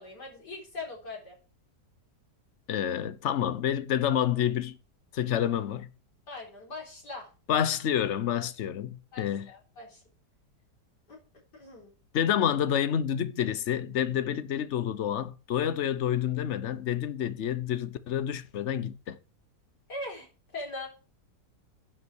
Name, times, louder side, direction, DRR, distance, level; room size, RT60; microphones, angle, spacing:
voice 1, 0.0-1.4 6.3-7.3 9.1-10.0 11.1-11.2 11.5-11.9 19.9-20.9, left 2 dB, 85° left, 4.8 m, -41 dB
voice 2, 2.7-4.8 5.1-5.9 7.5-9.5 12.1-19.2, left 9 dB, 55° left, 1.0 m, -28 dB
11.0 x 5.6 x 6.2 m
omnidirectional pair, 1.7 m